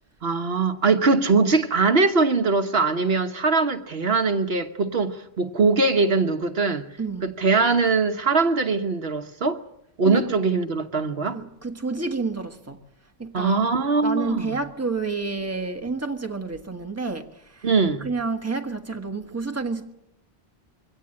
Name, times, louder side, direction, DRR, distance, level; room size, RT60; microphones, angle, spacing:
voice 1, 0.2-6.8 7.2-9.6 10.0-11.4 13.3-14.6 17.6-18.1, right 4 dB, 70° right, 1.3 m, -21 dB
voice 2, 7.0-7.3 10.0-10.3 11.3-12.8 13.2-13.6 14.0-17.7 18.0-19.9, right 3 dB, 15° right, 1.5 m, -29 dB
23.0 x 17.0 x 8.7 m
omnidirectional pair, 1.1 m